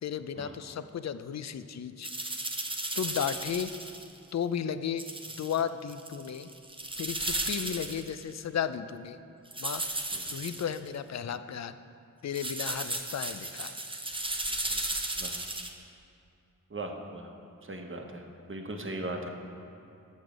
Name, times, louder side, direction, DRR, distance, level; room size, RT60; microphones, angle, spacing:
voice 1, 0.0-2.1 3.0-3.7 4.3-5.0 5.4-6.5 7.0-9.2 9.6-9.8 10.3-11.7 12.2-13.7, left 8 dB, 55° left, 12 dB, 0.4 m, -34 dB
sound 1, 2.0-4.2 5.0-5.6 5.9-8.2 9.5-10.8 12.3-15.7, right 2 dB, 15° right, 0.8 m, -35 dB
voice 2, 16.7-17.3 17.6-19.3, right 2 dB, 40° right, 3 dB, 1.0 m, -39 dB
7.0 x 6.3 x 6.2 m, 2.7 s
cardioid pair, 40°, 34 cm